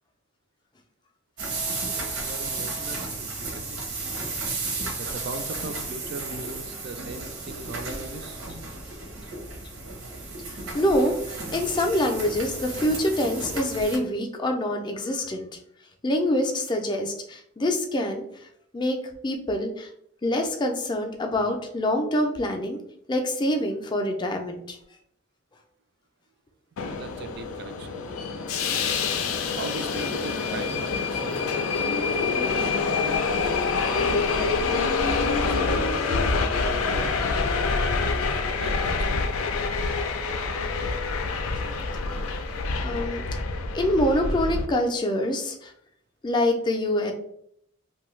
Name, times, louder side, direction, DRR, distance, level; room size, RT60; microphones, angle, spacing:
sound 1, 1.4-14.0, right 3 dB, 80° right, 0.8 m, -33 dB
voice 1, 1.9-3.1 3.4-4.1 4.9-8.4 26.9-28.2 28.8-31.5 32.5-32.8 33.4-37.2 38.6-39.2, right 3 dB, 50° right, 8 dB, 0.3 m, -39 dB
voice 2, 10.7-15.5 16.0-18.2 18.7-19.0 19.2-19.9 20.2-22.8 23.1-24.8 42.8-43.2 43.7-45.7 46.2-47.1, left 1 dB, 20° left, 3 dB, 0.3 m, -25 dB
Subway metro underground, 26.8-44.7, left 4 dB, 85° left, 0.4 m, -26 dB
2.7 x 2.2 x 3.0 m, 0.71 s
head